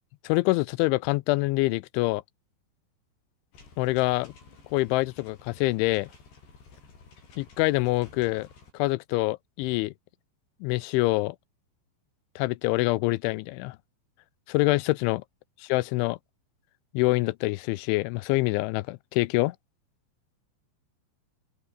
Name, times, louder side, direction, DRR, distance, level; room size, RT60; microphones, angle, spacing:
voice 1, 0.2-2.2 3.8-4.3 4.7-6.1 7.4-8.5 8.7-9.9 10.6-11.4 12.4-13.8 14.5-15.2 15.7-16.2 16.9-19.6, left 21 dB, 85° left, 2.9 m, -25 dB
sound 1, 3.5-8.7, left 4 dB, 60° left, 9.5 m, -53 dB
omnidirectional pair, 5.5 m